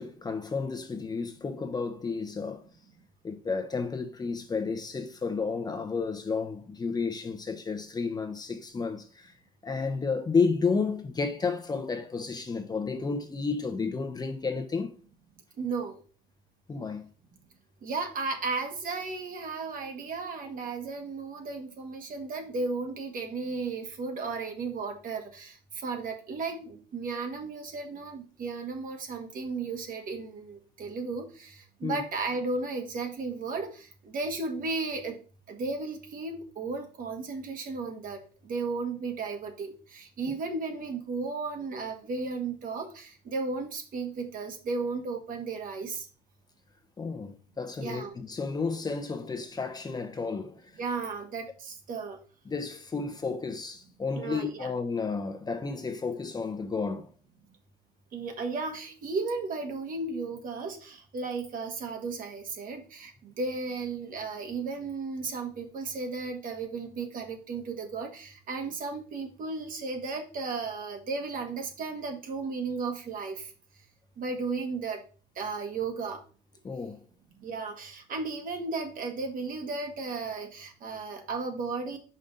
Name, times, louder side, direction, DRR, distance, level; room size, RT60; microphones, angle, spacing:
voice 1, 0.0-2.6 3.2-9.3 9.6-14.9 16.7-17.1 31.8-32.0 47.0-50.7 52.5-57.1 76.6-77.0, left 4 dB, 25° left, 0.8 m, -31 dB
voice 2, 15.6-16.0 17.8-35.2 35.5-38.2 38.4-46.1 47.8-48.2 50.8-52.2 54.1-54.7 58.1-73.5 74.2-75.0 75.4-76.2 77.4-82.0, right 4 dB, 55° right, 1.5 m, -34 dB
5.3 x 5.2 x 4.0 m
cardioid pair, 110°, 17 cm